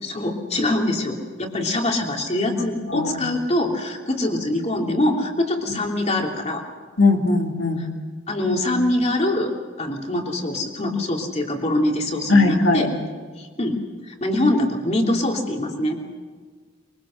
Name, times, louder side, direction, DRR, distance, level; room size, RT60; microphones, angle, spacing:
voice 1, 0.0-6.6 7.8-7.9 8.3-12.9 13.4-13.8 14.1-16.0, left 1 dB, 35° left, 1 dB, 3.0 m, -24 dB
voice 2, 7.0-7.9 12.3-12.9, left 3 dB, 70° left, 3 dB, 2.6 m, -19 dB
24.0 x 23.0 x 6.5 m, 1.5 s
head